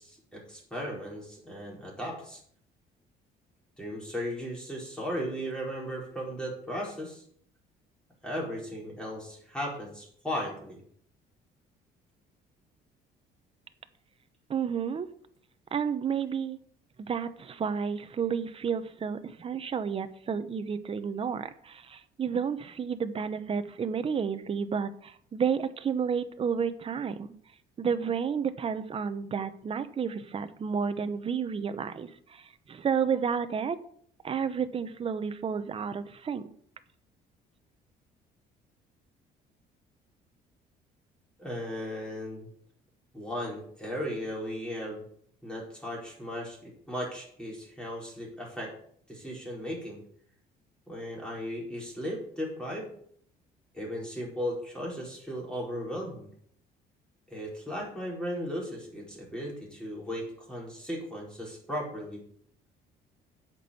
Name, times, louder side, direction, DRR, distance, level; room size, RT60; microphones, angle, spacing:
voice 1, 0.0-2.4 3.8-7.2 8.2-10.8 41.4-42.5 43.1-45.0 45.4-48.7 49.1-50.0 50.9-52.9 53.7-56.3 57.3-62.2, equal, 5° left, -3 dB, 4.8 m, -36 dB
voice 2, 14.5-15.1 15.7-16.6 17.0-27.3 27.8-33.8 34.2-36.4, right 6 dB, 35° right, 11 dB, 0.9 m, -31 dB
8.3 x 6.2 x 7.1 m, 0.62 s
cardioid pair, 110°, 17 cm